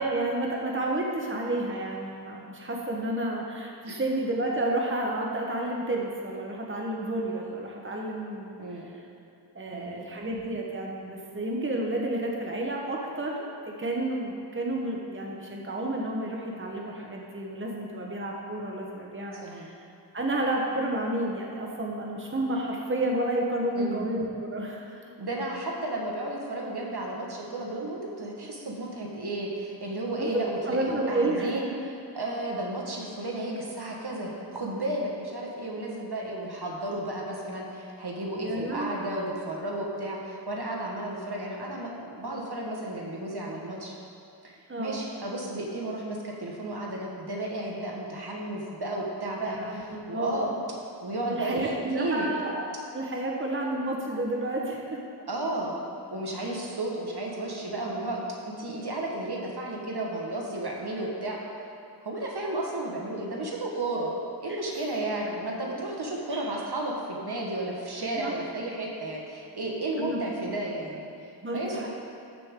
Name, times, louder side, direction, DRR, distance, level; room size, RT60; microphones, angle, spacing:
voice 1, 0.0-8.6 9.5-19.8 20.1-25.0 30.2-30.3 30.6-31.5 38.4-39.1 44.7-45.0 49.4-50.6 51.3-55.0 64.5-64.6 66.3-66.5 68.0-68.3 70.0-70.2 71.4-71.9, right 1 dB, 30° right, -1 dB, 1.2 m, -31 dB
voice 2, 8.6-8.9 9.7-10.0 19.4-19.7 23.7-24.1 25.2-43.9 44.4-50.5 51.0-52.3 55.3-55.8 56.1-58.2 58.4-61.4 62.0-64.1 64.4-71.9, right 1 dB, 65° right, -2 dB, 1.6 m, -33 dB
13.0 x 6.7 x 3.8 m, 2.6 s
wide cardioid pair, 45°, 42 cm